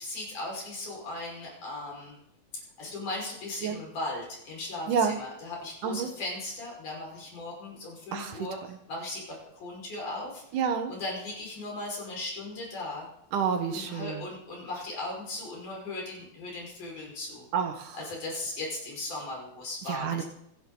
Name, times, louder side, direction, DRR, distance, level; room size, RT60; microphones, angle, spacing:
voice 1, 0.0-2.2 2.8-10.4 10.9-13.1 13.7-17.5 17.9-20.2, left 2 dB, 65° left, -2 dB, 6.9 m, -37 dB
voice 2, 4.9-5.2 5.8-6.1 8.1-8.4 10.5-10.9 13.3-14.1 17.5-18.0 19.9-20.2, right 7 dB, 70° right, 6 dB, 2.8 m, -28 dB
25.5 x 10.5 x 4.0 m, 0.76 s
omnidirectional pair, 3.9 m